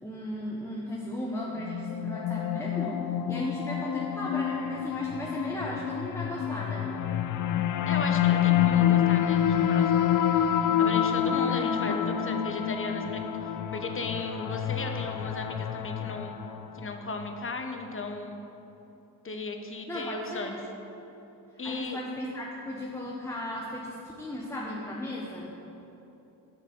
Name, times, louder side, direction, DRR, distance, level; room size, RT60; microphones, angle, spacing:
voice 1, 0.0-3.0 3.3-6.9 11.5-12.1 19.9-20.5 21.6-25.5, left 1 dB, 5° left, -4 dB, 1.2 m, -36 dB
sound 1, 1.6-16.9, left 9 dB, 45° left, 0.5 m, -27 dB
voice 2, 7.8-10.1 10.8-16.4 16.7-18.4 19.2-20.6 21.6-22.0, left 3 dB, 25° left, 5 dB, 1.1 m, -36 dB
7.9 x 6.3 x 5.4 m, 3.0 s
hypercardioid pair, 50°, 46 cm